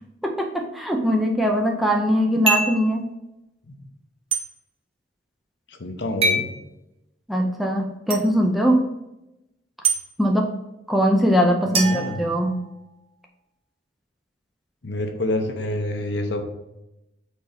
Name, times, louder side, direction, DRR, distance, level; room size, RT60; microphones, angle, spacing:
voice 1, 0.2-3.0 7.3-8.8 10.2-10.5 10.9-12.6, equal, ahead, 0 dB, 0.5 m, -21 dB
sound 1, 2.5-2.8 4.3-4.4 6.2-6.5 8.1-8.2 9.8-10.0 11.7-12.8, right 3 dB, 30° right, 0.9 m, -23 dB
voice 2, 5.7-6.5 11.7-12.2 14.8-16.4, left 1 dB, 60° left, 5 dB, 0.8 m, -27 dB
4.6 x 4.5 x 5.1 m, 0.91 s
head